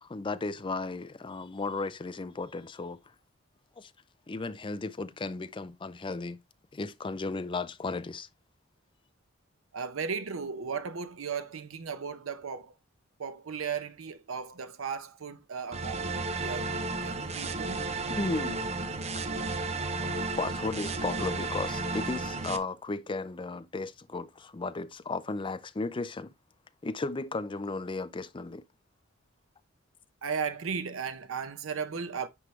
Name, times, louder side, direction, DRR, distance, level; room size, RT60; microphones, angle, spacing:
voice 1, 0.0-3.1 3.8-3.9 4.3-6.4 6.7-8.3 17.4-17.5 18.1-18.7 20.0-26.3 26.8-28.6, left 3 dB, 25° left, 0.5 m, -35 dB
voice 2, 9.7-12.7 13.2-17.8 30.2-32.3, right 6 dB, 85° right, 0.7 m, -36 dB
sound 1, 15.7-22.6, right 3 dB, 35° right, 0.7 m, -33 dB
9.7 x 3.4 x 3.1 m
head